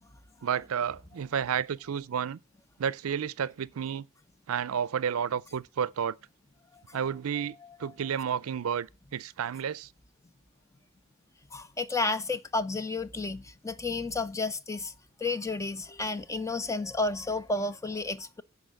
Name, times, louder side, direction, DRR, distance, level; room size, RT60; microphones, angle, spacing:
voice 1, 0.4-2.4 2.8-4.1 4.5-6.2 6.9-9.9, right 8 dB, 80° right, 0.4 m, -31 dB
voice 2, 11.5-14.9 15.2-18.4, left 3 dB, 15° left, 0.5 m, -32 dB
10.5 x 4.1 x 7.6 m
head